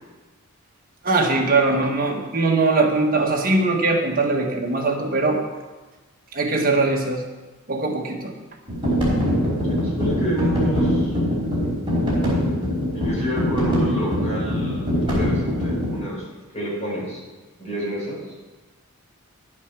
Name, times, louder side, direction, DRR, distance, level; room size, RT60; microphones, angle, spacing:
voice 1, 1.0-5.4 6.3-7.2 7.7-8.3, right 3 dB, 40° right, 1 dB, 1.5 m, -21 dB
sound 1, 8.7-16.0, equal, 20° right, 3.9 m, -22 dB
voice 2, 9.7-11.2 12.9-16.2 16.5-17.2 17.6-18.4, right 1 dB, 30° left, -4 dB, 4.2 m, -29 dB
10.5 x 8.5 x 6.1 m, 1.2 s
head